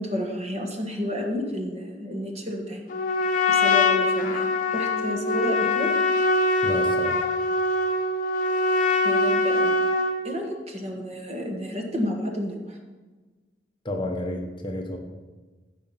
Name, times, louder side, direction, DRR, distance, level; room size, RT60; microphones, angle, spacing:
voice 1, 0.0-2.8 3.5-5.9 9.0-9.8 10.2-12.8, left 1 dB, 35° right, 1 dB, 1.5 m, -31 dB
Trumpet, 2.9-10.2, left 2 dB, 45° left, 1.1 m, -23 dB
voice 2, 6.6-7.3 13.8-15.0, left 1 dB, 25° left, 2 dB, 1.1 m, -31 dB
14.5 x 5.0 x 5.7 m, 1.3 s
head